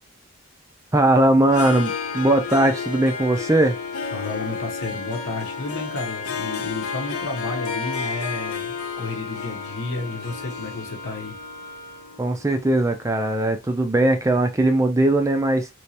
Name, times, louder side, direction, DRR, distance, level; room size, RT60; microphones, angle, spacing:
voice 1, 0.9-3.8 12.2-15.7, right 1 dB, 15° right, 0.3 m, -19 dB
Harp, 1.5-13.3, left 6 dB, 90° left, 0.6 m, -32 dB
sound 1, 1.5-12.4, equal, 15° left, 0.8 m, -41 dB
voice 2, 4.0-11.4, left 3 dB, 65° left, 0.9 m, -32 dB
3.3 x 3.0 x 2.8 m
head